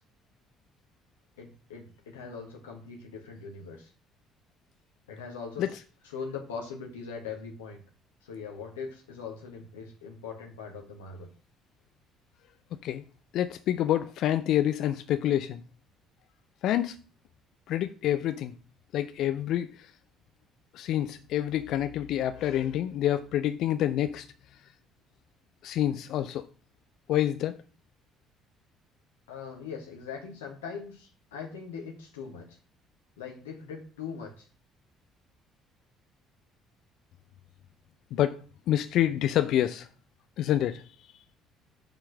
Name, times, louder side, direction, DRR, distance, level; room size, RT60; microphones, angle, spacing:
voice 1, 1.4-3.9 5.1-5.8 6.0-7.8 8.2-11.3 29.3-32.6 33.2-34.5, left 5 dB, 75° left, 1.2 m, -41 dB
voice 2, 13.3-15.6 16.6-17.0 17.7-18.5 18.9-19.9 20.7-24.3 25.6-26.5 27.1-27.6 38.1-38.4 38.7-39.9 40.4-40.8, left 12 dB, 55° left, 0.4 m, -27 dB
6.9 x 3.8 x 6.3 m
figure-of-eight pair, 50°, 0 cm